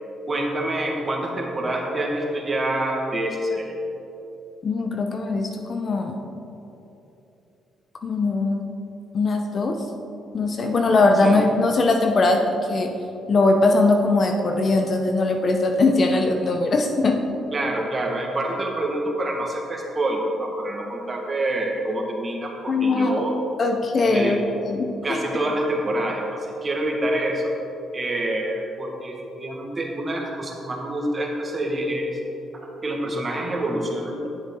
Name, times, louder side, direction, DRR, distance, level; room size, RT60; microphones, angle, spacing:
voice 1, 0.3-3.7 11.2-11.4 17.5-23.3 24.1-24.3 25.0-27.5 27.9-32.1 32.5-34.3, right 1 dB, 30° right, 0 dB, 1.6 m, -26 dB
voice 2, 4.6-6.2 8.0-8.6 9.1-9.8 10.3-12.9 13.3-17.2 22.7-23.1 23.6-25.2, left 3 dB, 45° left, 4 dB, 0.7 m, -21 dB
10.5 x 7.0 x 3.7 m, 2.9 s
cardioid pair, 90°, 0 cm